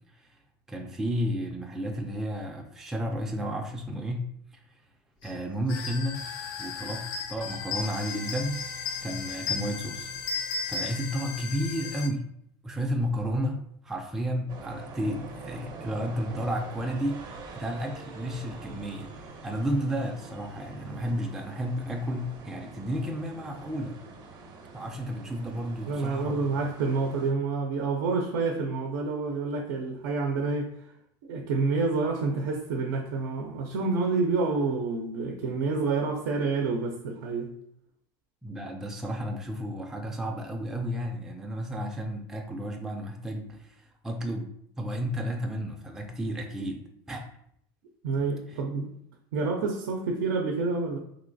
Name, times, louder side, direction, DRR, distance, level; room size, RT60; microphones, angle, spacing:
voice 1, 0.7-4.2 4.5-4.8 5.2-6.2 6.6-8.6 9.0-10.1 10.7-12.3 12.6-17.2 17.5-24.0 24.7-26.4 38.4-44.5 44.8-46.8 47.1-47.2 48.5-48.6, equal, 5° right, 1 dB, 0.3 m, -32 dB
sound 1, 5.2-5.4 5.7-11.5, left 4 dB, 85° left, 0.8 m, -36 dB
sound 2, 5.7-12.1, left 7 dB, 65° left, 0.4 m, -39 dB
sound 3, 14.5-27.3, right 3 dB, 45° right, 0.6 m, -45 dB
voice 2, 25.9-30.7 31.2-37.5 48.0-48.9 49.3-51.0, right 4 dB, 85° right, 2 dB, 0.5 m, -28 dB
3.0 x 2.8 x 2.6 m, 0.70 s
supercardioid pair, 115°, 11 cm